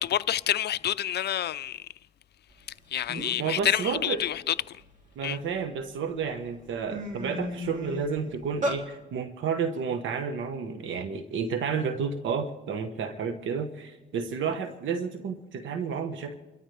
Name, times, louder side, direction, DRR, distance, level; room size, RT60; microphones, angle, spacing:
voice 1, 0.0-1.8 2.9-4.5 5.2-5.4, left 11 dB, 55° left, 0.5 m, -28 dB
sound 1, 2.7-2.8 3.1-3.5 4.0-5.5 6.1-6.3 6.6-8.8, equal, 40° right, 2.1 m, -34 dB
voice 2, 3.4-4.2 5.2-16.3, right 6 dB, 75° right, 1.4 m, -31 dB
29.0 x 13.0 x 3.4 m
cardioid pair, 90°, 20 cm